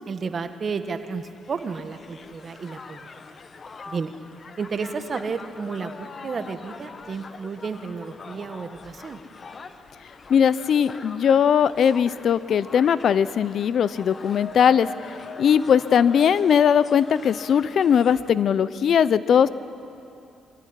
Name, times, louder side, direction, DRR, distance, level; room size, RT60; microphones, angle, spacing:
voice 1, 0.1-3.1 3.9-4.1 4.6-9.2, right 5 dB, 45° right, 8 dB, 1.4 m, -32 dB
Crowd, 1.0-18.4, left 4 dB, 40° left, 1.1 m, -43 dB
voice 2, 10.3-14.9 15.4-19.5, left 8 dB, 60° left, 17 dB, 0.6 m, -19 dB
23.5 x 14.5 x 10.0 m, 2.7 s
cardioid pair, 90°, 0 cm